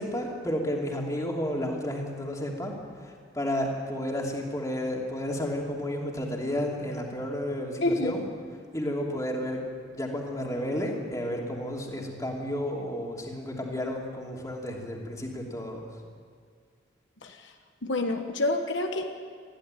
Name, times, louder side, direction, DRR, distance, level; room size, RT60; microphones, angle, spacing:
voice 1, 0.0-2.7 3.0-8.3 8.7-9.6 9.9-15.9, equal, 15° left, -1 dB, 2.9 m, -32 dB
voice 2, 7.8-8.2 17.2-17.3 17.8-19.1, left 2 dB, 75° left, 5 dB, 1.4 m, -27 dB
21.5 x 15.5 x 9.1 m, 2.1 s
head